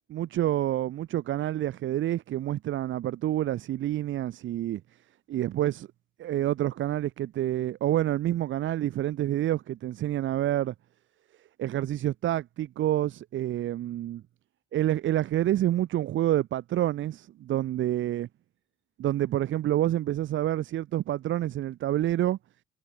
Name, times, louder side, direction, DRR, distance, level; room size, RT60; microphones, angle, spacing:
voice 1, 0.1-4.8 5.3-5.9 6.2-10.7 11.6-14.2 14.7-18.3 19.0-22.4, right 13 dB, 75° right, 1.7 m, -28 dB
cardioid pair, 90°, 20 cm